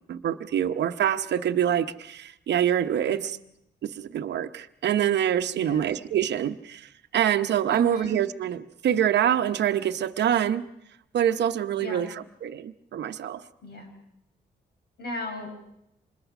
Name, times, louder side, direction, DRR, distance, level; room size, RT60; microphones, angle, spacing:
voice 1, 0.1-3.4 3.8-10.6 11.1-12.1 12.4-13.4, right 10 dB, 75° right, 0.9 m, -25 dB
voice 2, 5.5-5.9 7.7-8.2 11.8-12.1 13.6-13.9 15.0-15.6, left 1 dB, 65° left, 6.1 m, -36 dB
26.0 x 21.0 x 6.0 m
cardioid pair, 80°, 18 cm